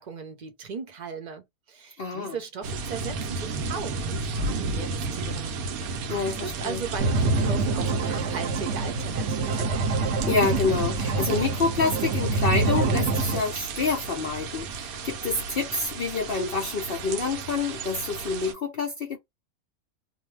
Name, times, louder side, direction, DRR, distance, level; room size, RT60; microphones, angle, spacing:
voice 1, 0.0-9.8, right 6 dB, 45° right, 0.6 m, -38 dB
voice 2, 2.0-2.4 6.1-6.8 10.2-19.2, left 4 dB, 55° left, 0.7 m, -27 dB
sound 1, 2.6-18.5, right 3 dB, 85° right, 1.1 m, -34 dB
sound 2, 7.0-13.4, right 3 dB, 60° right, 0.9 m, -26 dB
2.7 x 2.1 x 3.2 m
omnidirectional pair, 1.5 m